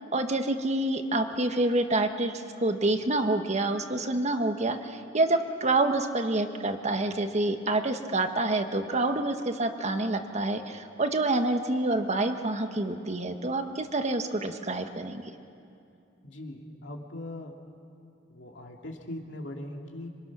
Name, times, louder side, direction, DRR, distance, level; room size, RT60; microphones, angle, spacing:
voice 1, 0.0-15.3, right 2 dB, 40° right, 7 dB, 1.3 m, -27 dB
voice 2, 16.2-17.5 18.3-20.1, left 1 dB, 80° left, 1 dB, 2.7 m, -40 dB
26.0 x 24.5 x 6.2 m, 2.5 s
head